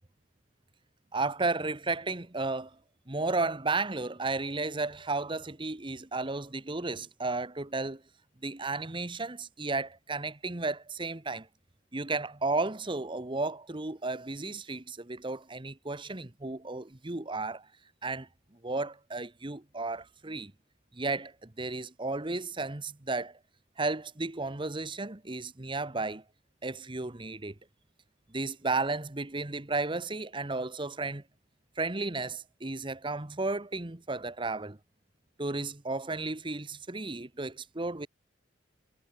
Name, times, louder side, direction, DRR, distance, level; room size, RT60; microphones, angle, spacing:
voice 1, 1.1-2.8 3.1-8.0 8.4-11.5 11.9-17.7 18.0-18.3 18.6-20.5 20.9-23.4 23.8-26.2 26.6-27.5 28.3-31.2 31.8-34.8 35.4-38.1, right 3 dB, 25° right, 1.1 m, -33 dB
head